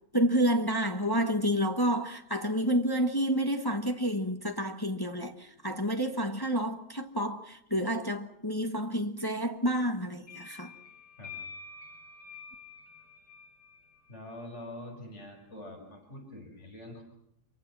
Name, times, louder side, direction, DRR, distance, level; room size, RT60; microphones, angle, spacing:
voice 1, 0.1-10.7, equal, 15° left, 1.2 m, -29 dB
sound 1, 10.2-14.7, left 5 dB, 60° left, 7.6 m, -48 dB
voice 2, 14.1-17.0, left 1 dB, 45° left, 6.2 m, -45 dB
27.0 x 24.0 x 6.2 m
omnidirectional pair, 1.7 m